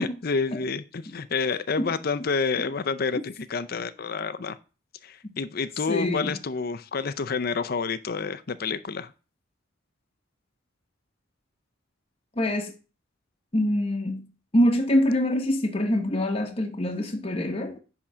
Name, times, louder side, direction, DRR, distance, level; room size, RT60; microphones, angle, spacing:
voice 1, 0.0-4.6 5.0-9.1, left 5 dB, 50° left, 0.6 m, -29 dB
voice 2, 5.9-6.4 12.4-12.7 13.5-14.3 14.5-17.8, left 1 dB, 30° left, 0.9 m, -25 dB
10.0 x 3.8 x 6.1 m
head